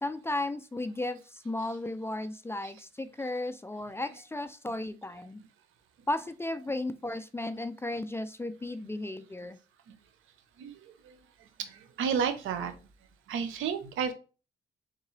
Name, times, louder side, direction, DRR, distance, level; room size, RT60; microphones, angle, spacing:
voice 1, 0.0-5.4 6.1-9.6, left 2 dB, 10° left, 0.3 m, -35 dB
voice 2, 12.0-12.7 13.3-14.1, right 7 dB, 80° right, 0.7 m, -30 dB
3.7 x 3.7 x 3.1 m
cardioid pair, 90°, 20 cm